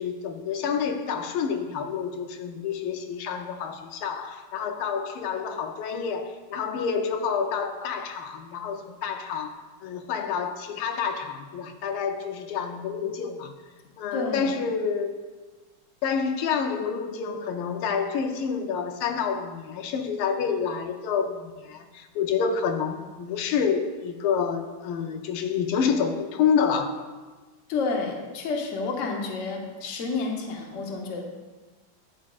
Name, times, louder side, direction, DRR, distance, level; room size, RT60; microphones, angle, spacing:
voice 1, 0.0-13.5 14.0-15.2 16.0-27.0, left 6 dB, 90° left, 5 dB, 1.6 m, -28 dB
voice 2, 14.1-14.5 27.7-31.2, left 4 dB, 50° left, 1 dB, 1.0 m, -30 dB
11.5 x 6.1 x 2.4 m, 1.3 s
omnidirectional pair, 2.3 m